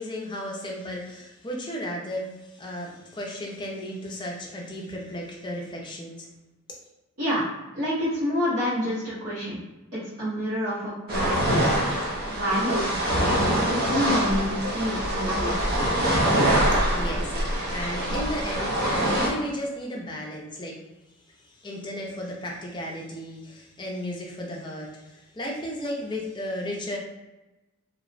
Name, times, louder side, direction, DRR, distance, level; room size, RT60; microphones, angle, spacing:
voice 1, 0.0-6.3 16.7-20.7 21.3-27.0, equal, 20° left, -1 dB, 0.4 m, -34 dB
voice 2, 7.7-9.6 9.9-15.5, equal, 75° right, -11 dB, 0.9 m, -28 dB
sound 1, 11.1-19.3, right 1 dB, 45° right, 0.5 m, -24 dB
2.8 x 2.0 x 2.5 m, 1.0 s
head